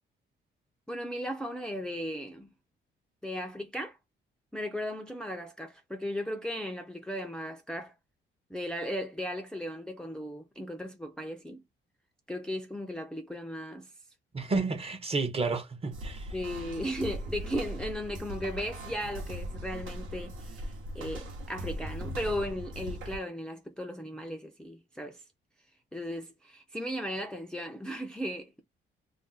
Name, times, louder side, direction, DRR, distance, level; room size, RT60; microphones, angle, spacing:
voice 1, 0.9-2.5 3.2-4.0 4.5-7.9 8.5-11.6 12.3-13.9 16.3-25.2 25.9-28.6, equal, 5° left, 0.4 m, -36 dB
voice 2, 14.3-16.3, right 3 dB, 30° right, 0.7 m, -31 dB
sound 1, 15.9-23.2, right 1 dB, 80° right, 0.9 m, -39 dB
2.5 x 2.1 x 3.8 m
cardioid pair, 90°, 20 cm